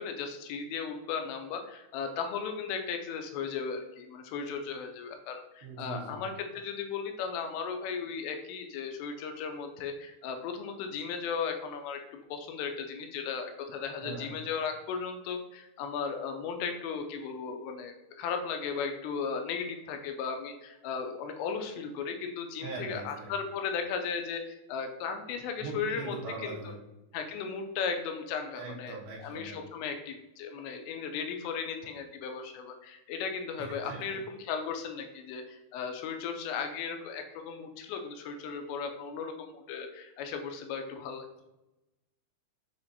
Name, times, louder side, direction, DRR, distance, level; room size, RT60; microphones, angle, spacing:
voice 1, 0.0-26.2 26.4-26.6 27.1-41.4, left 6 dB, 85° left, 5 dB, 2.6 m, -36 dB
voice 2, 5.6-6.1 14.0-14.3 22.6-23.3 25.6-26.7 28.6-29.6 33.6-34.0, right 4 dB, 75° right, -4 dB, 3.0 m, -41 dB
7.1 x 2.5 x 2.7 m, 0.96 s
omnidirectional pair, 5.1 m